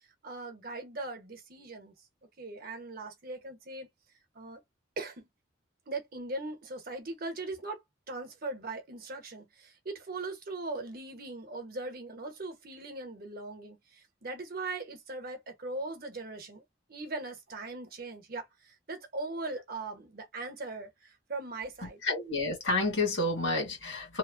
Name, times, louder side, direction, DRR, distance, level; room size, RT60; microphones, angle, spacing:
voice 1, 0.2-1.9 2.4-3.9 4.3-4.6 5.0-5.3 5.9-7.8 8.1-16.6 16.9-22.0, right 2 dB, 50° right, 0.9 m, -40 dB
voice 2, 22.0-24.2, left 2 dB, 75° left, 1.5 m, -29 dB
2.9 x 2.0 x 2.5 m
head